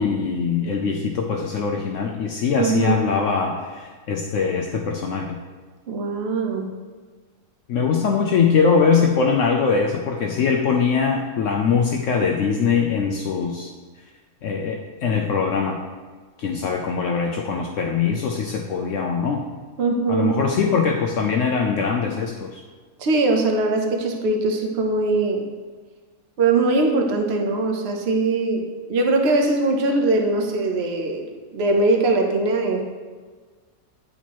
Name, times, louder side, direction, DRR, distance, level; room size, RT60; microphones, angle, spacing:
voice 1, 0.0-5.4 7.7-13.7 14.4-15.8 16.4-19.4 20.1-22.6, left 5 dB, 70° left, 1 dB, 0.9 m, -22 dB
voice 2, 2.5-3.0 5.9-6.7 19.8-20.4 23.0-25.5 26.4-28.6 28.9-32.8, right 3 dB, 50° right, 3 dB, 1.0 m, -21 dB
10.0 x 4.4 x 3.0 m, 1.5 s
omnidirectional pair, 1.5 m